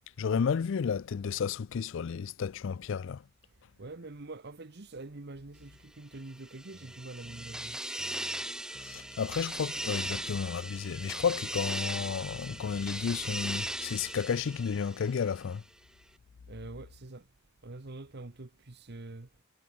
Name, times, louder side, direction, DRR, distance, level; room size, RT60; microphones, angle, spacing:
voice 1, 0.2-3.2 8.7-15.6, left 6 dB, 65° left, 0.4 m, -32 dB
voice 2, 3.8-7.8 16.5-17.2 17.6-19.3, right 2 dB, 55° right, 1.1 m, -45 dB
sound 1, 6.3-15.4, right 1 dB, 5° right, 0.6 m, -38 dB
sound 2, 6.7-13.8, right 1 dB, 35° right, 2.9 m, -56 dB
head